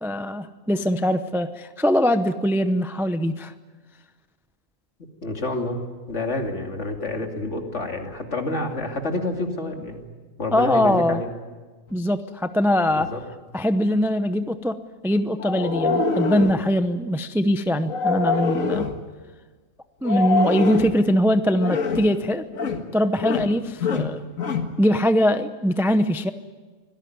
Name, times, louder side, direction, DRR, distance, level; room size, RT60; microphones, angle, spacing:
voice 1, 0.0-3.5 10.5-11.2 11.9-13.1 13.5-14.8 15.0-18.9 20.0-22.5 22.9-24.2 24.8-26.3, equal, 5° right, 10 dB, 0.5 m, -22 dB
voice 2, 5.2-5.8 6.1-10.1 10.4-11.3 12.9-13.2, left 2 dB, 55° left, 3 dB, 3.0 m, -28 dB
sound 1, 15.4-16.6 17.9-19.0 20.0-21.0 21.6-22.1 22.5-22.9 23.1-23.5 23.8-24.7, left 4 dB, 75° left, 2.1 m, -25 dB
25.0 x 17.5 x 9.5 m, 1.3 s
omnidirectional pair, 1.4 m